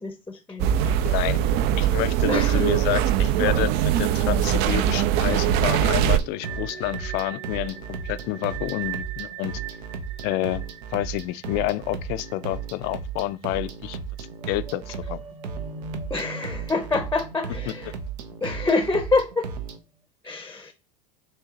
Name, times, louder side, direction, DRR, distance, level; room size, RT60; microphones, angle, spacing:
voice 1, 0.0-0.9 2.3-2.7 16.1-17.9 18.4-19.5 20.2-20.7, left 3 dB, 10° left, 0.7 m, -26 dB
sound 1, 0.6-6.2, right 10 dB, 50° right, 0.4 m, -21 dB
voice 2, 1.0-1.4 1.8-9.6 10.2-10.6 10.9-14.0 14.5-15.2, left 17 dB, 55° left, 0.4 m, -29 dB
sound 2, 4.3-19.8, right 6 dB, 75° right, 0.8 m, -35 dB
sound 3, 6.4-13.3 13.5-13.7 14.2-19.6, right 6 dB, 30° right, 1.3 m, -41 dB
6.4 x 2.7 x 2.8 m
hypercardioid pair, 95°, 21 cm